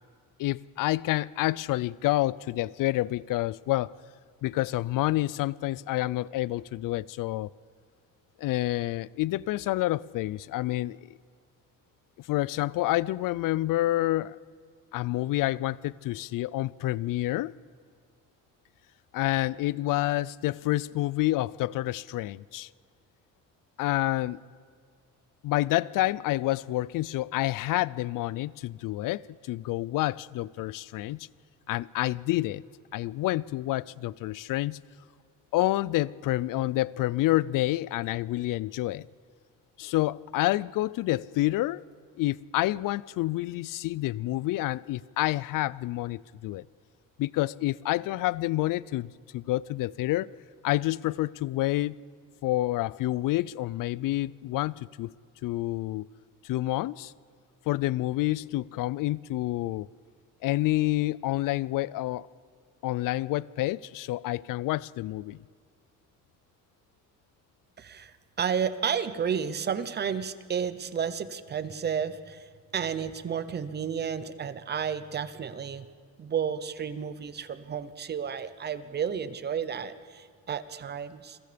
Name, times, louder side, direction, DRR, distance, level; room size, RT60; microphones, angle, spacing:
voice 1, 0.4-3.9 4.4-7.5 8.4-11.0 12.3-14.4 14.9-17.5 19.1-22.7 23.8-24.4 25.4-31.3 31.7-32.6 32.9-34.8 35.5-39.1 39.8-41.8 42.2-46.6 47.2-50.3 50.6-52.0 52.4-55.1 55.4-56.1 56.4-57.1 57.7-59.9 60.4-62.3 62.8-65.4, left 17 dB, 80° left, 0.5 m, -28 dB
voice 2, 67.8-72.5 72.7-75.9 76.2-81.4, right 7 dB, 30° right, 0.8 m, -32 dB
29.0 x 22.0 x 5.2 m
cardioid pair, 180°, 33 cm